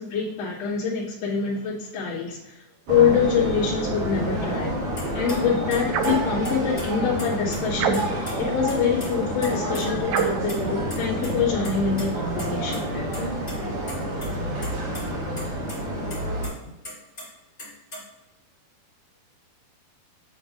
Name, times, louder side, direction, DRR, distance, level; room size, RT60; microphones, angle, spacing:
voice 1, 0.0-2.5 2.9-4.8 5.1-12.8, left 6 dB, 50° left, -8 dB, 3.1 m, -25 dB
sound 1, 2.9-16.5, right 1 dB, 55° right, 3.3 m, -29 dB
sound 2, 5.0-5.1 5.3-5.4 5.7-6.8 7.2-8.0 8.3-8.4 8.7-9.1 9.4-9.8 10.2-11.3 11.6-12.1 12.4-12.5 12.7-12.8 13.1-13.5 13.9-14.3 14.6-15.0 15.4-15.5 15.7-15.8 16.1-17.2 17.6-18.0, left 1 dB, 25° left, 1.5 m, -35 dB
sound 3, 5.9-6.3 7.8-8.3 10.1-10.5, right 8 dB, 80° right, 2.6 m, -26 dB
voice 2, 12.7-15.5, left 1 dB, 75° left, -2 dB, 2.8 m, -40 dB
8.4 x 6.9 x 2.6 m, 0.94 s
omnidirectional pair, 5.1 m